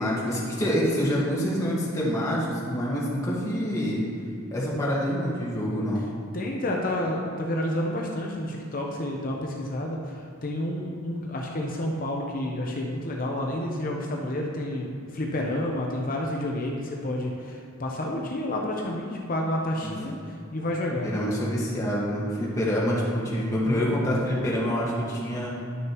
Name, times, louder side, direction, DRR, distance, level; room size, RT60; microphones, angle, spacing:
voice 1, 0.0-4.0 4.5-6.1 19.8-19.9 21.0-25.5, equal, 15° left, -7 dB, 1.6 m, -26 dB
voice 2, 6.3-20.2 20.5-21.1, left 1 dB, 40° left, -1 dB, 0.7 m, -30 dB
11.0 x 6.4 x 3.0 m, 2.3 s
head